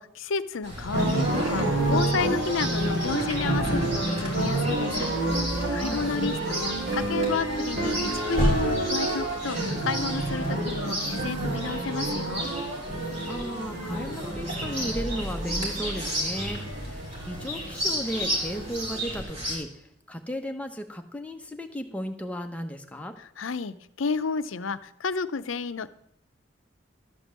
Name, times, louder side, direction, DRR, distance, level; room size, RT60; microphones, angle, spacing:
voice 1, 0.0-5.1 5.7-12.5 23.2-25.9, left 5 dB, 80° left, 12 dB, 0.6 m, -31 dB
Chirp tweet, 0.6-19.6, equal, 35° right, 3.7 m, -33 dB
sound 1, 0.9-19.2, right 2 dB, 55° right, 3.7 m, -29 dB
voice 2, 5.7-6.1 13.3-19.7 20.1-23.1, equal, 5° left, 4 dB, 0.9 m, -35 dB
13.0 x 5.3 x 7.4 m, 0.73 s
head